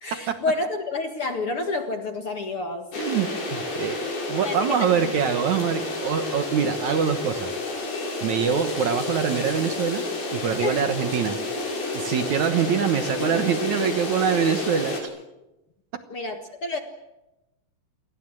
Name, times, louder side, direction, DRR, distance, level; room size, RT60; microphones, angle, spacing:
voice 1, 0.0-2.9 4.4-5.1 10.6-10.9 16.1-16.8, left 3 dB, 50° left, 5 dB, 1.9 m, -29 dB
sound 1, 2.9-15.0, left 2 dB, 70° left, 7.6 m, -30 dB
voice 2, 3.0-4.0 4.3-7.5 8.2-10.0 10.3-11.4 11.9-15.1, right 8 dB, 65° right, 8 dB, 2.1 m, -24 dB
29.0 x 22.0 x 7.7 m, 0.97 s
omnidirectional pair, 4.5 m